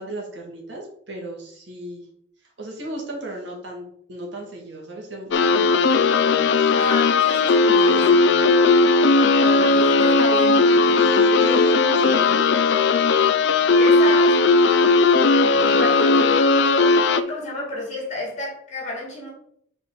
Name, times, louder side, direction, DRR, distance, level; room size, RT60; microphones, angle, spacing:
voice 1, 0.0-2.1 2.6-3.8 4.1-6.5 7.7-8.6 11.0-12.4, right 1 dB, 60° right, 2.0 m, -35 dB
sound 1, 5.3-17.2, left 3 dB, 60° left, 0.4 m, -17 dB
voice 2, 6.8-8.2 9.4-11.2 13.7-14.6 15.5-19.3, left 1 dB, 35° left, 2.5 m, -31 dB
5.4 x 4.4 x 4.9 m
head